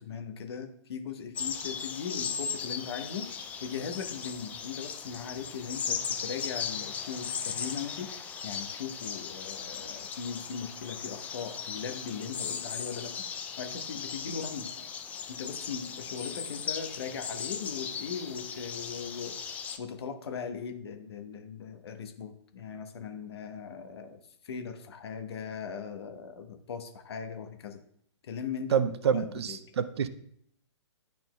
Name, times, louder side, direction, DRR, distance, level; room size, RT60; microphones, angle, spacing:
voice 1, 0.0-3.3 3.6-13.2 13.6-14.7 15.3-19.3 19.8-24.2 24.4-27.8 28.2-29.6, left 6 dB, 60° left, 1.0 m, -39 dB
sound 1, 1.3-19.8, left 7 dB, 10° left, 0.3 m, -37 dB
voice 2, 28.7-30.1, right 8 dB, 60° right, 0.6 m, -27 dB
11.5 x 4.2 x 2.2 m
figure-of-eight pair, 130°, 15 cm